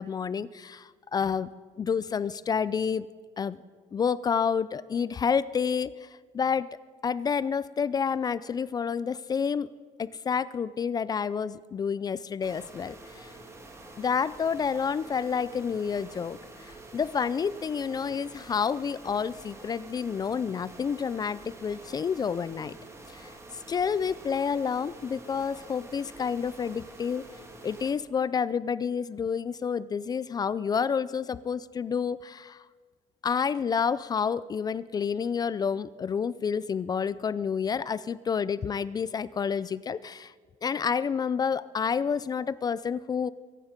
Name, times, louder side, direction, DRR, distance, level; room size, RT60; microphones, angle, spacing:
voice 1, 0.0-1.5 1.8-3.1 3.4-3.6 3.9-6.7 7.0-9.7 10.0-13.3 14.0-22.8 23.1-27.2 27.6-32.6 33.2-40.3 40.6-43.3, left 6 dB, 30° left, 18 dB, 0.4 m, -29 dB
sound 1, 12.4-27.9, right 2 dB, 20° right, 2.2 m, -48 dB
23.5 x 9.7 x 5.2 m, 1.5 s
cardioid pair, 120°, 13 cm